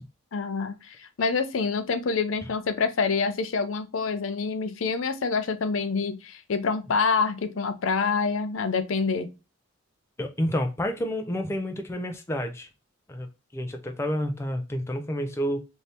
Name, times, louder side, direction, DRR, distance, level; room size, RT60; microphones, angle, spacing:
voice 1, 0.3-9.3, left 4 dB, 75° left, 0.5 m, -27 dB
voice 2, 10.2-12.7 13.1-13.3 13.5-15.6, equal, 15° left, 0.3 m, -29 dB
2.7 x 2.7 x 3.3 m
head